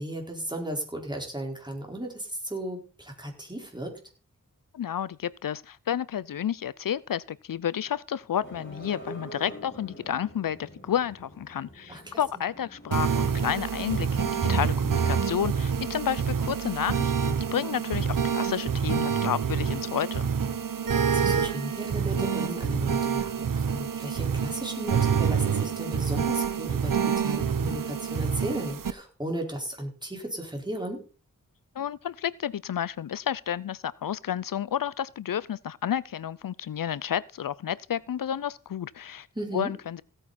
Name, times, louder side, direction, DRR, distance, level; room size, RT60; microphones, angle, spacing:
voice 1, 0.0-4.0 11.9-12.2 20.8-31.0 39.3-39.7, right 1 dB, 15° right, 4.4 m, -35 dB
voice 2, 4.7-20.3 31.8-39.3 39.5-40.0, left 9 dB, 80° left, 0.5 m, -31 dB
sound 1, 8.4-14.7, equal, 35° left, 5.1 m, -46 dB
sound 2, 12.9-28.9, right 7 dB, 80° right, 0.9 m, -27 dB
16.5 x 8.8 x 4.1 m
wide cardioid pair, 75°, 33 cm